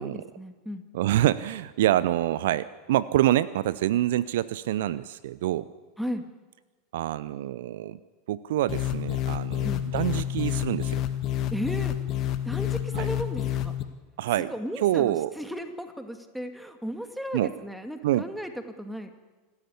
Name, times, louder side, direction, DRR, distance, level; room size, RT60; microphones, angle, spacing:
voice 1, 0.0-0.8 6.0-6.2 9.6-9.8 11.5-12.0 12.4-13.7 14.5-18.5 18.8-19.1, equal, ahead, 7 dB, 2.3 m, -35 dB
voice 2, 0.9-5.7 6.9-8.0 8.3-11.0 12.9-13.1 14.2-14.5 14.8-15.3 17.3-17.5 18.0-18.2, right 13 dB, 65° right, 18 dB, 0.6 m, -26 dB
sound 1, 8.7-13.8, left 11 dB, 45° left, 1.6 m, -29 dB
26.5 x 13.0 x 8.5 m, 1.3 s
figure-of-eight pair, 80°, 0 cm